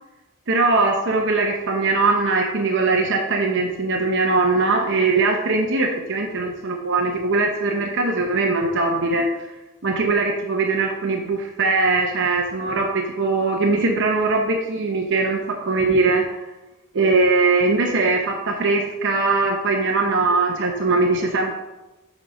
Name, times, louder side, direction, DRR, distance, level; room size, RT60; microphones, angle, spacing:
voice 1, 0.5-9.5 9.8-16.4 16.9-21.5, right 3 dB, 60° right, 2 dB, 0.8 m, -21 dB
8.1 x 4.2 x 5.3 m, 1.0 s
head